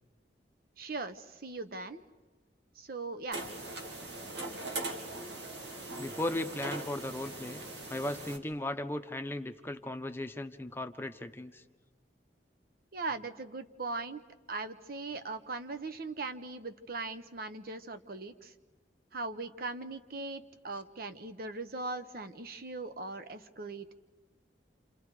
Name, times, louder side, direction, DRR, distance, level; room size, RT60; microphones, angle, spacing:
voice 1, 0.8-2.0 2.8-3.4 12.9-14.2 14.5-18.5 19.1-23.9, right 3 dB, 55° right, 11 dB, 1.0 m, -39 dB
sound 1, 3.3-8.4, right 2 dB, 80° right, 2.6 m, -40 dB
voice 2, 6.0-7.6 7.9-11.6, left 1 dB, 15° left, 7 dB, 0.9 m, -37 dB
28.5 x 28.0 x 4.9 m, 1.2 s
head